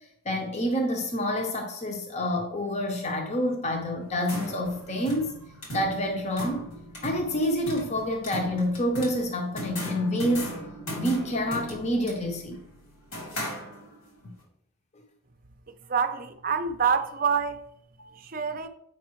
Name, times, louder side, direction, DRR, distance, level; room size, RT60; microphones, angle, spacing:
voice 1, 0.2-5.3 5.7-6.7 7.0-10.5 11.0-12.6 18.0-18.1, equal, 30° left, 0.7 m, -28 dB
sound 1, 4.0-14.2, equal, 85° left, 2.8 m, -38 dB
voice 2, 15.9-17.6 18.2-18.7, right 6 dB, 40° right, 0.5 m, -26 dB
8.4 x 5.2 x 3.1 m
head